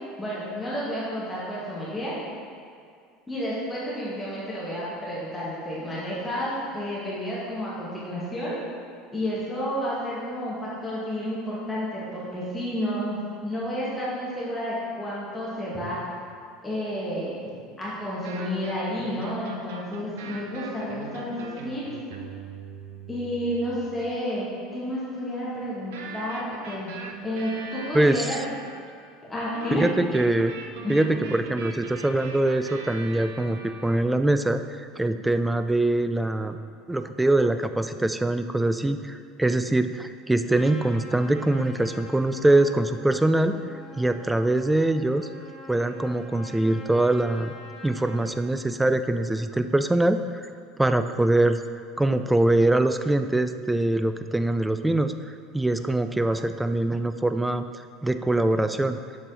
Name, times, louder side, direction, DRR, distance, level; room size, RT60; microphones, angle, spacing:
voice 1, 0.2-2.1 3.3-8.6 9.1-16.0 16.6-17.4 17.8-21.8 23.1-26.9 27.2-28.4 29.2-29.8 30.8-31.1, equal, 15° left, -8 dB, 1.9 m, -31 dB
sound 1, 18.1-24.0 25.9-28.9 29.5-34.0, right 5 dB, 60° right, 0.6 m, -41 dB
voice 2, 27.9-28.4 29.7-30.6 30.9-36.6 36.9-43.6 43.9-45.3 45.7-47.5 47.8-50.5 50.8-51.6 52.0-55.1 55.5-57.6 58.0-59.0, right 1 dB, 5° right, 9 dB, 0.3 m, -23 dB
Trumpet, 40.5-48.3, left 2 dB, 40° left, 1.2 m, -45 dB
7.6 x 5.5 x 4.0 m, 2.3 s
figure-of-eight pair, 70°, 0 cm